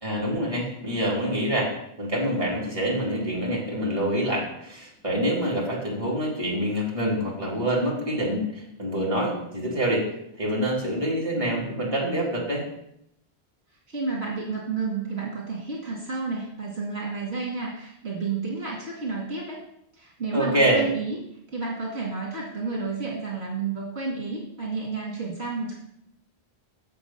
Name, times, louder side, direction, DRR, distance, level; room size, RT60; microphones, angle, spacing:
voice 1, 0.0-1.7 2.0-10.1 10.4-12.6 20.3-20.8, right 1 dB, 30° right, -5 dB, 2.8 m, -26 dB
voice 2, 13.9-19.6 19.9-21.2 21.5-25.7, right 4 dB, 70° right, -3 dB, 2.1 m, -31 dB
7.6 x 7.1 x 5.6 m, 0.78 s
omnidirectional pair, 1.1 m